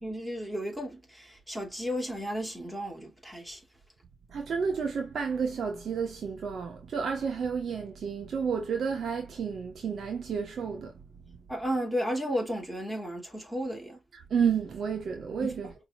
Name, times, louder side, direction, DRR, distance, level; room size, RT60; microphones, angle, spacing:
voice 1, 0.0-3.6 11.5-14.0 15.4-15.5, equal, 10° right, 2.6 m, -33 dB
voice 2, 4.3-10.9 14.1-15.7, right 6 dB, 65° right, 1.2 m, -31 dB
5.5 x 3.9 x 2.4 m
cardioid pair, 85°, 0 cm